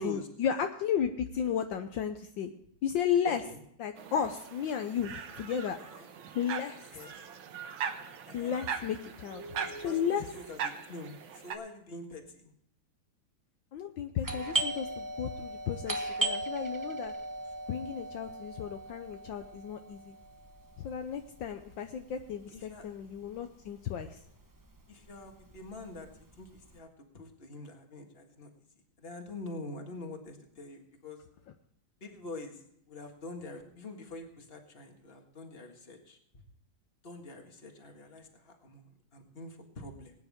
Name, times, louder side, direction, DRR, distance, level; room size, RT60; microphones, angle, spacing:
voice 1, 0.0-2.5 2.8-3.4 3.8-5.8 6.3-6.8 8.3-9.4 9.8-10.2 13.7-17.1 17.7-20.2 20.8-24.2, left 8 dB, 70° left, 6 dB, 1.4 m, -33 dB
sound 1, 4.0-11.6, right 6 dB, 80° right, 1.9 m, -40 dB
voice 2, 9.6-12.5 22.5-22.9 24.9-26.1 26.4-26.9 27.1-28.5 29.0-31.2 32.0-32.5 32.9-36.2 37.0-38.8 39.1-40.1, left 2 dB, 30° left, 3 dB, 1.9 m, -45 dB
Doorbell, 14.2-23.6 23.9-24.0 24.6-24.9 25.3-26.6, right 2 dB, 15° right, 0.7 m, -37 dB
20.5 x 9.5 x 3.6 m, 0.72 s
omnidirectional pair, 2.2 m